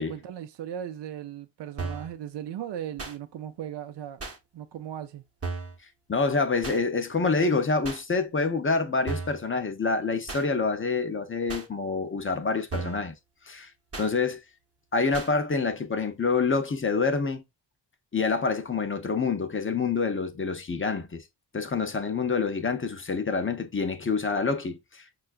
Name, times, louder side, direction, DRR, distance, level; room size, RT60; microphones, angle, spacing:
voice 1, 0.0-4.2 4.5-5.2, right 10 dB, 65° right, 0.5 m, -37 dB
sound 1, 1.8-2.1 3.0-3.2 4.2-4.4 5.4-5.8 6.6-6.8 7.8-8.0 9.1-9.4 10.3-10.4 11.5-11.7 12.7-13.1 13.9-14.1 15.1-15.3, right 4 dB, 30° right, 0.8 m, -34 dB
voice 2, 6.1-13.2 13.4-13.7 14.0-14.4 14.9-17.4 18.1-21.2 21.5-25.2, left 4 dB, 30° left, 0.6 m, -27 dB
5.4 x 2.4 x 2.4 m
wide cardioid pair, 85°, 44 cm